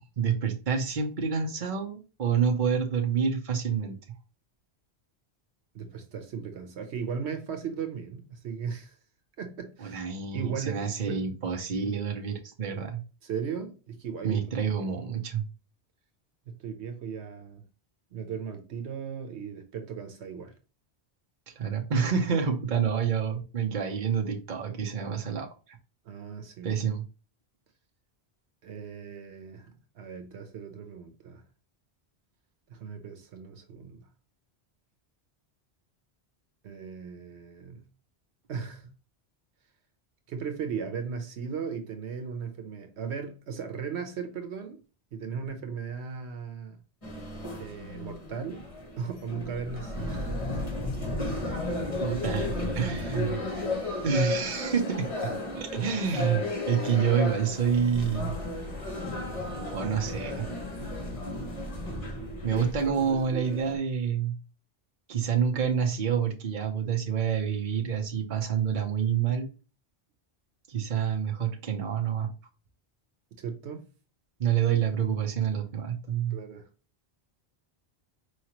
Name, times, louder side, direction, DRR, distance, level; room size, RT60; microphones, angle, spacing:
voice 1, 0.2-4.0 9.8-13.0 14.2-15.4 21.6-25.5 26.6-27.0 52.0-53.4 54.0-55.1 55.6-58.3 59.7-60.5 62.4-64.3 65.1-69.5 70.7-72.3 74.4-76.4, right 7 dB, 50° right, 1.0 m, -28 dB
voice 2, 5.7-8.9 9.4-10.0 10.3-11.2 13.2-14.4 14.8-15.1 16.5-17.6 18.1-20.5 26.0-26.7 28.6-31.4 32.7-34.0 36.6-37.8 38.5-38.8 40.3-44.8 45.1-46.8 47.6-48.7 49.0-50.3 62.5-63.4 73.4-73.8 76.3-76.7, right 6 dB, 85° right, 1.1 m, -37 dB
sound 1, 47.0-63.8, left 2 dB, 30° left, 1.3 m, -34 dB
4.8 x 3.1 x 2.9 m
omnidirectional pair, 1.1 m